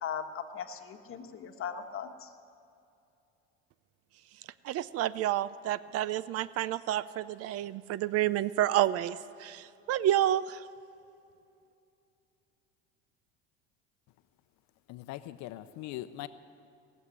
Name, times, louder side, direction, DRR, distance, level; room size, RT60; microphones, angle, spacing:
voice 1, 0.0-2.3, left 7 dB, 45° left, 6 dB, 1.4 m, -38 dB
voice 2, 4.6-10.6, right 12 dB, 50° right, 18 dB, 0.5 m, -29 dB
voice 3, 14.9-16.3, left 15 dB, 60° left, 13 dB, 0.7 m, -41 dB
19.0 x 7.4 x 9.7 m, 2.6 s
supercardioid pair, 95°, 32 cm